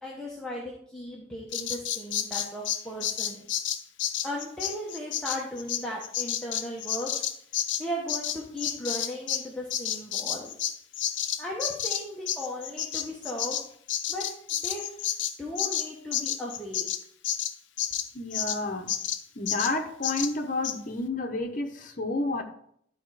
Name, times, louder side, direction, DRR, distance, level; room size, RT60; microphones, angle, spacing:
voice 1, 0.0-3.5 4.2-7.1 7.8-10.7 11.4-13.6 14.1-14.2 14.5-15.1 15.4-16.8, equal, 5° left, -4 dB, 1.1 m, -36 dB
Bird vocalization bird call bird song, 1.5-9.4 9.7-18.6 18.9-19.2 19.5-19.7 20.0-20.3 20.6-20.8, left 10 dB, 70° left, 0.7 m, -30 dB
voice 2, 18.1-18.9 19.4-22.4, left 2 dB, 40° left, 3 dB, 1.0 m, -30 dB
12.0 x 4.3 x 4.8 m, 0.68 s
head